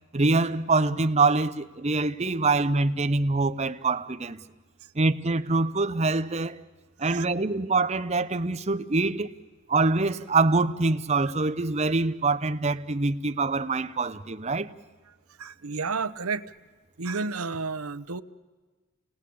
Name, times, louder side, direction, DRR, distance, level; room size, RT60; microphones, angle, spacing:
voice 1, 0.1-4.4 4.9-6.6 7.0-9.3 9.7-14.7, right 3 dB, 30° right, 0.8 m, -25 dB
voice 2, 15.4-16.4 17.0-18.2, right 4 dB, 90° right, 0.9 m, -31 dB
29.5 x 19.0 x 8.6 m
head